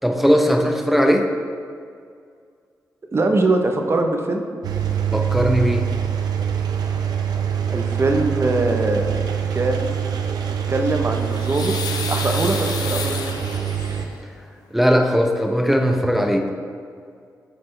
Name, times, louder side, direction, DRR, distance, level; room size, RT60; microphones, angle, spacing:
voice 1, 0.0-1.3 5.1-5.9 14.7-16.5, equal, ahead, 3 dB, 0.7 m, -18 dB
voice 2, 3.1-4.4 7.7-9.1 9.5-10.0 10.7-11.7 12.1-13.2, right 2 dB, 40° right, 3 dB, 0.8 m, -22 dB
Engine, 4.6-14.0, right 8 dB, 85° right, 0.5 m, -24 dB
sound 1, 10.9-14.2 15.4-15.5 15.8-16.0, left 5 dB, 80° left, 0.5 m, -31 dB
8.0 x 4.3 x 3.3 m, 2.2 s
cardioid pair, 50°, 7 cm